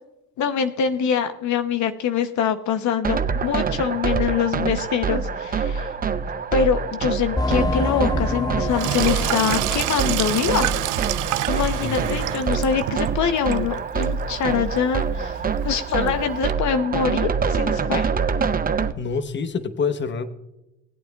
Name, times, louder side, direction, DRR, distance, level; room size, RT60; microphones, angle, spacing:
voice 1, 0.4-5.9 6.5-10.7 11.5-18.1, left 7 dB, 70° left, 9 dB, 0.8 m, -24 dB
sound 1, 3.0-18.9, right 6 dB, 30° right, 0.6 m, -25 dB
sound 2, 7.4-11.6 12.0-12.1 12.6-12.7, left 2 dB, 15° left, 0.6 m, -28 dB
Sink (filling or washing), 8.7-16.5, right 15 dB, 85° right, 0.5 m, -29 dB
voice 2, 11.8-12.2 19.0-20.3, left 5 dB, 40° left, 11 dB, 0.9 m, -26 dB
19.5 x 8.7 x 2.3 m, 0.92 s
cardioid pair, 90°, 30 cm